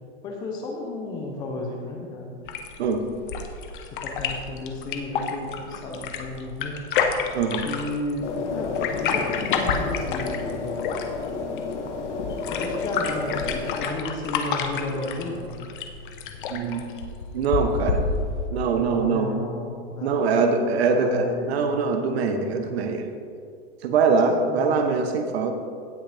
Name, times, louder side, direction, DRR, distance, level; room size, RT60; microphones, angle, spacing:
voice 1, 0.2-2.4 3.8-6.8 7.6-10.8 12.5-15.6 18.8-21.6 24.4-24.8, left 2 dB, 10° left, 1 dB, 0.6 m, -33 dB
sound 1, 2.4-18.5, left 5 dB, 45° left, 0.9 m, -30 dB
voice 2, 7.3-7.7 16.5-16.8 17.3-18.0 18.5-19.3 20.0-23.1 23.8-25.6, right 4 dB, 65° right, 5 dB, 1.1 m, -23 dB
sound 2, 8.2-13.8, left 5 dB, 85° left, 1.5 m, -31 dB
17.0 x 6.3 x 3.4 m, 2.3 s
supercardioid pair, 180°, 34 cm